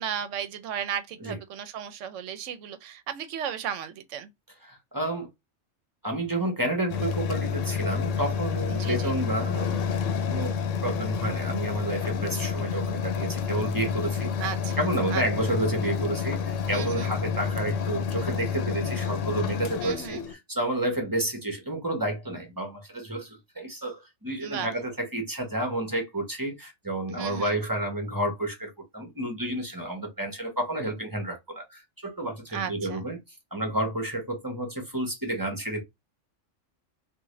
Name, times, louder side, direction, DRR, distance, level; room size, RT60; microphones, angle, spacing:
voice 1, 0.0-4.3 8.7-9.2 14.4-14.8 15.1-15.2 16.7-17.1 19.8-20.2 24.4-24.7 27.1-27.6 32.5-33.0, right 8 dB, 75° right, 0.9 m, -35 dB
voice 2, 4.7-5.3 6.0-9.9 10.3-10.5 10.8-14.3 14.8-33.2 33.5-35.8, right 1 dB, 20° right, 0.9 m, -30 dB
sound 1, 6.9-20.3, left 6 dB, 75° left, 0.9 m, -29 dB
3.6 x 2.4 x 3.1 m
omnidirectional pair, 1.3 m